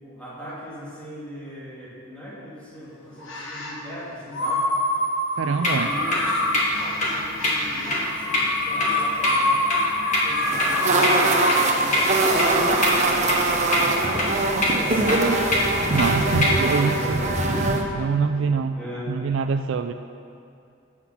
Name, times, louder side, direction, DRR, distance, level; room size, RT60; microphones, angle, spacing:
voice 1, 0.0-4.7 5.4-9.7 10.1-15.2 16.1-17.4 18.2-18.5 18.7-19.2, equal, 5° left, -8 dB, 2.7 m, -39 dB
sound 1, 3.2-3.8 4.3-12.9, left 1 dB, 65° left, 1.8 m, -26 dB
voice 2, 5.4-5.9 15.9-17.2 17.9-18.8 19.1-19.9, right 5 dB, 60° right, 9 dB, 0.4 m, -24 dB
sound 2, 5.6-16.6, left 1 dB, 35° left, 2.0 m, -26 dB
sound 3, 10.4-17.8, right 2 dB, 35° right, 0.9 m, -22 dB
15.5 x 5.9 x 6.0 m, 2.5 s
head